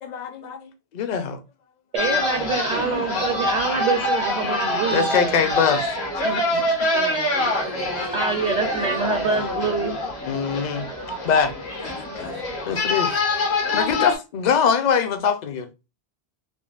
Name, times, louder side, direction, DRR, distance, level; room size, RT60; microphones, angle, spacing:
voice 1, 0.0-1.4 2.9-3.3 4.9-5.9 6.2-6.7 10.3-10.9 11.2-11.5 11.8-12.3 12.6-13.1 13.7-15.7, left 7 dB, 55° left, 0.5 m, -23 dB
voice 2, 1.9-5.4 6.6-6.7 8.1-10.0, right 4 dB, 55° right, 0.6 m, -25 dB
sound 1, 2.0-14.2, left 2 dB, 75° left, 1.2 m, -25 dB
voice 3, 6.9-9.4, right 3 dB, 85° right, 1.2 m, -36 dB
3.7 x 2.0 x 2.3 m
omnidirectional pair, 1.1 m